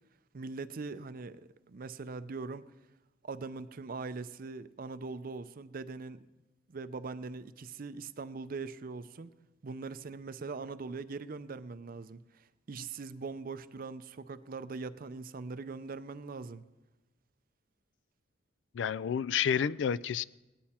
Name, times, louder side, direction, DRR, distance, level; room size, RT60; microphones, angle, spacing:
voice 1, 0.3-2.7 3.2-6.2 6.7-9.3 9.6-16.6, right 4 dB, 50° right, 13 dB, 0.5 m, -41 dB
voice 2, 18.7-20.2, left 8 dB, 75° left, 19 dB, 0.4 m, -30 dB
19.0 x 10.5 x 4.3 m, 1.1 s
head